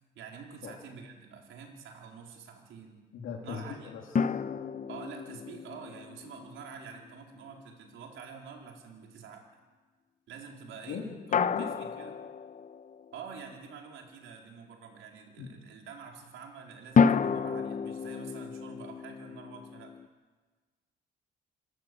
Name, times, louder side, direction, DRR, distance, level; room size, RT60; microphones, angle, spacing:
voice 1, 0.1-3.0 3.4-3.9 4.9-9.4 10.3-11.0 11.4-12.2 13.1-19.9, right 6 dB, 80° right, 1 dB, 4.3 m, -47 dB
voice 2, 3.1-4.0 10.9-11.6 15.4-15.5, left 6 dB, 85° left, -1 dB, 3.2 m, -38 dB
sound 1, 4.2-7.5 11.3-13.3 17.0-20.1, left 6 dB, 40° left, 0.9 m, -30 dB
27.0 x 14.0 x 7.8 m, 1.4 s
cardioid pair, 90°, 20 cm